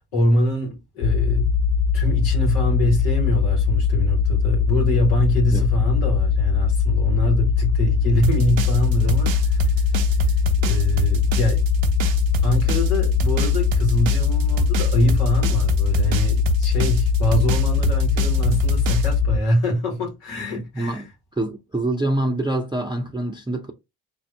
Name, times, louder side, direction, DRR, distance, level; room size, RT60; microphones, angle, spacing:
voice 1, 0.0-1.5 1.9-11.7 12.4-21.0, equal, 90° left, 1.3 m, -24 dB
sound 1, 1.0-19.4, left 6 dB, 60° left, 0.6 m, -20 dB
sound 2, 8.2-19.1, right 8 dB, 65° right, 0.7 m, -28 dB
voice 2, 20.7-21.1 21.4-23.7, right 1 dB, 10° right, 0.6 m, -25 dB
4.4 x 2.0 x 3.3 m
hypercardioid pair, 45°, 50 cm